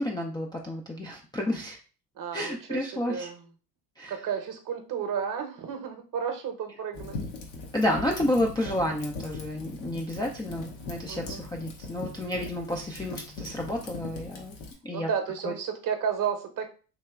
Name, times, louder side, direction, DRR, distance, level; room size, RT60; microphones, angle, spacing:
voice 1, 0.0-1.8 2.3-3.3 4.0-4.1 7.7-14.6 14.8-15.1 15.4-15.5, left 1 dB, 10° left, -2 dB, 0.3 m, -30 dB
voice 2, 2.2-3.4 4.1-7.2 11.1-11.4 14.9-16.7, right 7 dB, 40° right, 6 dB, 0.8 m, -32 dB
Fire, 6.9-14.7, left 3 dB, 70° left, 0.9 m, -40 dB
3.2 x 2.8 x 2.3 m, 0.37 s
hypercardioid pair, 60°, 49 cm